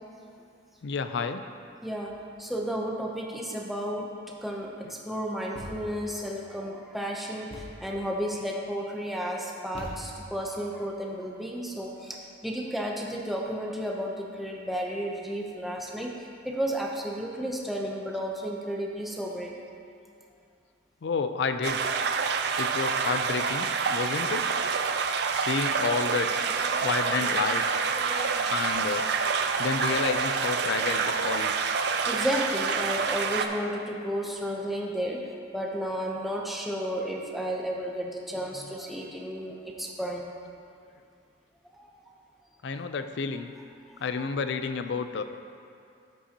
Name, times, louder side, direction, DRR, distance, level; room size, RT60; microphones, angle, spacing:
voice 1, 0.8-1.4 21.0-22.0 22.6-24.6 25.3-26.3 26.8-27.6 28.5-29.1 29.6-31.7 42.6-43.5 44.0-45.2, left 5 dB, 60° left, 9 dB, 0.4 m, -30 dB
voice 2, 1.8-4.1 4.4-19.6 24.0-24.3 26.5-27.0 27.2-28.5 32.1-40.3 41.7-41.9 44.2-44.3, equal, ahead, -2 dB, 0.6 m, -33 dB
Thump thud, 5.5-6.1 7.5-8.0 9.7-10.4, equal, 30° left, 1.0 m, -42 dB
sound 1, 21.6-33.5, right 5 dB, 55° right, 0.4 m, -27 dB
13.0 x 5.4 x 2.8 m, 2.5 s
head